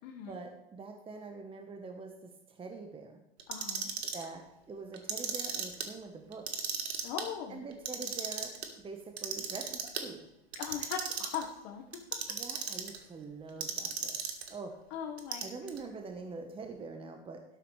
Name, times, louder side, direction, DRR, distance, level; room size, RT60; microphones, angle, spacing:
voice 1, 0.2-3.2 4.1-6.5 7.5-10.3 12.3-14.2 14.5-14.8 15.4-17.4, right 4 dB, 15° right, 4 dB, 1.2 m, -44 dB
Clock, 3.4-4.2 4.9-5.9 6.3-7.2 7.7-8.7 9.2-10.0 10.5-11.4 11.9-13.0 13.6-14.5 15.2-15.8, right 6 dB, 85° right, 1.7 m, -36 dB
voice 2, 3.5-3.9 7.0-7.6 10.5-11.8 14.9-15.5, left 8 dB, 55° left, 0 dB, 1.6 m, -39 dB
12.5 x 12.0 x 3.3 m, 0.88 s
hypercardioid pair, 105°, 31 cm